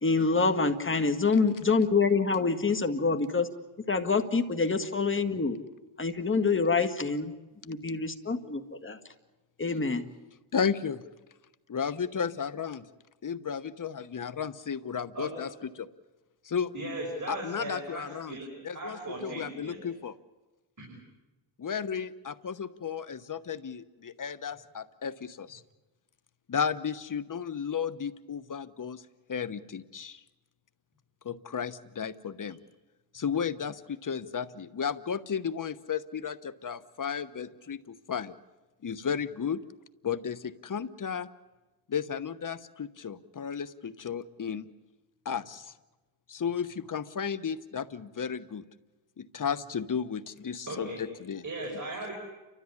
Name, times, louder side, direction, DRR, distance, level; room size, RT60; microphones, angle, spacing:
voice 1, 0.0-3.5 3.9-5.6 6.0-7.3 7.7-9.0 9.6-10.0, left 4 dB, 25° left, 7 dB, 1.8 m, -26 dB
voice 2, 10.5-11.0 11.7-12.9 13.2-15.9 16.4-16.7 17.3-18.4 18.6-20.1 21.6-25.6 26.5-29.0 29.3-30.2 31.2-32.6 33.1-38.3 38.8-39.6 40.0-41.3 41.9-44.7 45.2-45.7 46.3-48.6 49.2-51.4 51.7-51.8, left 7 dB, 40° left, 13 dB, 1.1 m, -34 dB
voice 3, 16.7-18.5 18.7-19.8 20.8-20.9 50.7-51.0 51.4-52.1, right 2 dB, 40° right, 0 dB, 5.9 m, -37 dB
29.5 x 13.5 x 9.7 m, 1.1 s
cardioid pair, 75°, 47 cm